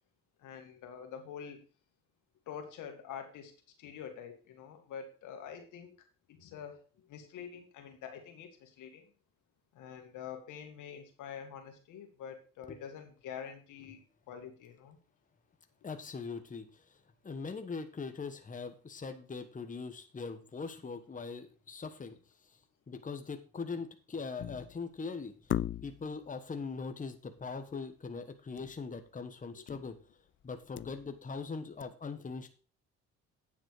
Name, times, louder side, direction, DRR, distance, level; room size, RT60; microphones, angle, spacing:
voice 1, 0.4-1.6 2.5-3.5 3.8-6.0 6.3-9.1 9.7-14.0 14.3-15.0 29.6-29.7, left 7 dB, 85° left, 5 dB, 2.3 m, -46 dB
voice 2, 15.8-22.6 22.9-29.9 30.4-32.5, left 4 dB, 25° left, 7 dB, 1.3 m, -41 dB
sound 1, 24.4-24.8 25.5-26.2 28.6-28.8 29.1-29.2 29.7-30.0 30.4-31.4 31.8-31.9, left 11 dB, 40° left, 0.4 m, -37 dB
9.2 x 7.3 x 4.9 m, 0.36 s
cardioid pair, 90°, 30 cm